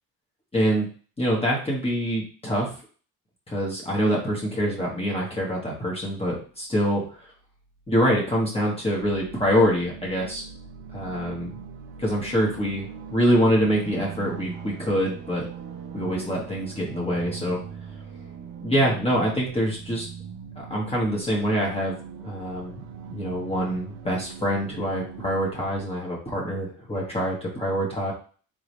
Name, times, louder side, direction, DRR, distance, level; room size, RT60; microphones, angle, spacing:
voice 1, 0.5-0.9 1.2-2.7 3.5-7.3 7.9-10.4 10.9-11.6 12.0-15.5 15.9-17.6 18.6-20.1 20.6-22.0 22.2-28.1, equal, 15° left, -4 dB, 1.3 m, -25 dB
sound 1, 9.0-25.8, right 7 dB, 75° right, 0.9 m, -40 dB
3.8 x 3.6 x 3.2 m, 0.40 s
cardioid pair, 130°, 38 cm